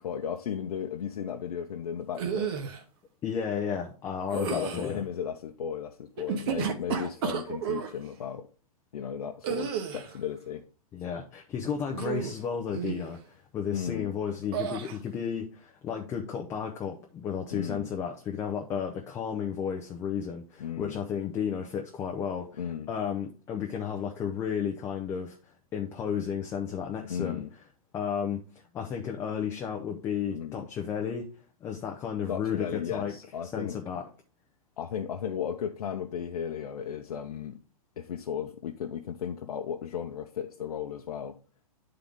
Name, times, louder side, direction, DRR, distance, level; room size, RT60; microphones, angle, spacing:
voice 1, 0.0-2.5 4.3-8.5 8.9-10.6 13.7-14.1 17.5-17.9 20.6-21.0 22.6-22.9 27.1-27.5 30.3-30.7 32.3-33.8 34.8-37.6 38.0-41.4, left 8 dB, 90° left, 4 dB, 0.7 m, -35 dB
sound 1, 2.1-2.8 4.3-4.9 6.2-7.9 9.4-10.2 11.9-12.4 12.7-13.1 14.5-15.0, right 8 dB, 40° right, 0.9 m, -32 dB
voice 2, 3.2-5.0 10.9-22.6 22.9-25.4 25.7-27.4 27.9-28.4 28.7-31.3 31.6-33.1 33.5-34.0, left 7 dB, 15° left, 1 dB, 0.5 m, -33 dB
9.7 x 3.8 x 3.5 m, 0.38 s
hypercardioid pair, 155°, 19 cm